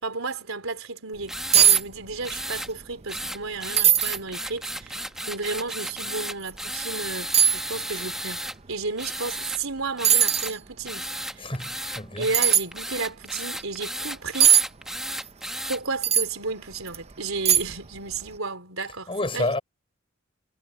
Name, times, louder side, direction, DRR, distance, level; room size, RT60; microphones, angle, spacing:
voice 1, 0.0-1.3 1.6-8.4 8.7-11.0 11.4-11.5 12.2-14.6 15.7-19.5, right 3 dB, 85° right, 3.8 m, -33 dB
sound 1, 1.2-1.3 1.5-1.8 2.1-2.7 3.0-3.1 3.8-4.2 4.8-4.9 6.4-6.6 7.3-7.6 9.5-9.6 10.0-10.5 12.3-12.6 14.4-14.6 16.0-16.3 16.9-17.0 17.4-17.9 18.1-18.3, right 9 dB, 30° right, 0.7 m, -18 dB
sound 2, 1.3-1.8 2.2-2.7 3.1-8.6 9.0-9.6 10.0-10.5 10.8-15.8, right 1 dB, ahead, 1.0 m, -34 dB
voice 2, 11.4-12.3 19.1-19.6, left 2 dB, 25° left, 6.3 m, -29 dB
head